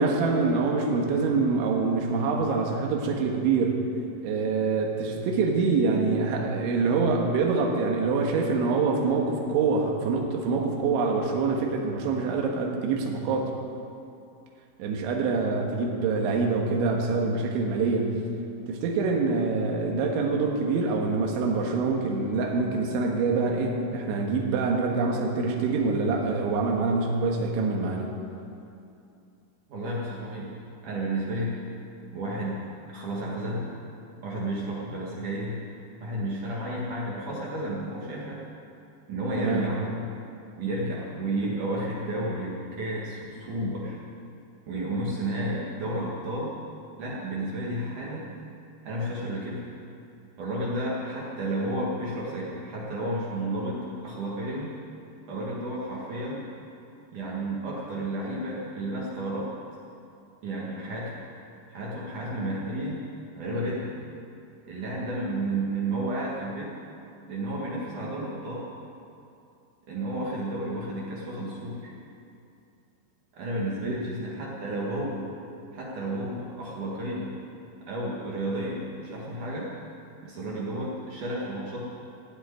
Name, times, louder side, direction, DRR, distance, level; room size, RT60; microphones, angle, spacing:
voice 1, 0.0-3.9 4.2-13.5 14.8-18.1 18.7-28.1 39.4-39.7 73.9-74.0, right 4 dB, 70° right, 1 dB, 3.7 m, -25 dB
voice 2, 29.7-30.5 30.8-31.5 32.1-33.7 34.2-35.6 36.0-38.4 39.1-39.8 40.6-44.0 44.7-46.6 47.0-48.3 48.8-49.6 50.4-54.8 55.3-56.5 57.1-59.5 60.4-61.2 61.7-63.0 63.3-64.0 64.7-66.7 67.3-68.7 69.9-71.9 73.3-75.3 75.7-77.3 77.9-79.7 80.2-81.8, right 1 dB, 55° right, -4 dB, 2.5 m, -32 dB
16.0 x 8.1 x 9.6 m, 2.6 s
omnidirectional pair, 5.8 m